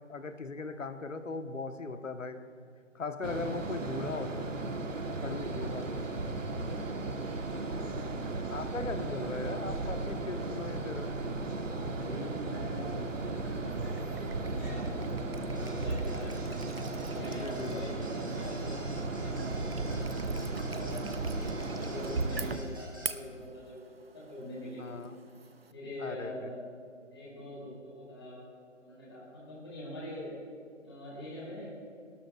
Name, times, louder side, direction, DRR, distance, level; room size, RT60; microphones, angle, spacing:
voice 1, 0.1-2.4 2.9-4.5 5.2-5.9 8.5-11.2 17.0-17.9 24.8-25.2 26.0-26.5, left 3 dB, 85° left, 8 dB, 1.1 m, -39 dB
sound 1, 3.2-22.5, right 2 dB, 90° right, 1.2 m, -35 dB
voice 2, 11.8-16.4 17.0-20.0 20.5-24.9 25.7-26.6 27.1-28.5 28.8-30.3 30.8-31.7, left 1 dB, 20° left, -6 dB, 3.1 m, -44 dB
sound 2, 13.1-25.7, right 4 dB, 55° right, 0.6 m, -47 dB
sound 3, 15.6-23.1, equal, 15° right, 1.1 m, -51 dB
24.5 x 12.5 x 2.4 m, 2.2 s
figure-of-eight pair, 180°, 37 cm